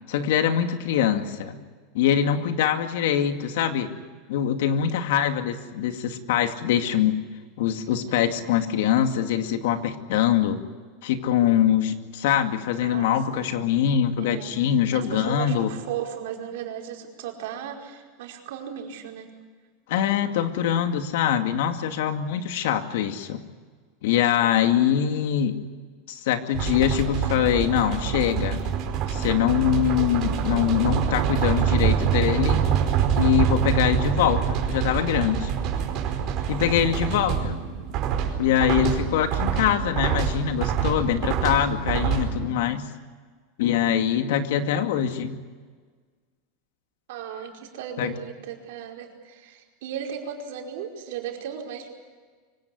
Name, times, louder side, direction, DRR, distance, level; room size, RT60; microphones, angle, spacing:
voice 1, 0.1-1.6 1.9-3.9 4.3-7.1 7.6-10.6 11.0-15.7 19.9-23.4 24.0-25.6 26.1-28.6 29.1-32.6 33.2-35.5 36.5-37.6 38.4-42.9 43.6-45.4 48.0-48.1, left 9 dB, 75° left, 7 dB, 2.3 m, -23 dB
voice 2, 12.8-13.6 14.2-14.6 14.9-19.3 47.1-52.0, right 8 dB, 75° right, 1 dB, 5.0 m, -36 dB
sound 1, 26.5-42.3, right 8 dB, 40° right, 4.9 m, -25 dB
24.5 x 17.5 x 9.9 m, 1.5 s
supercardioid pair, 155°, 0 cm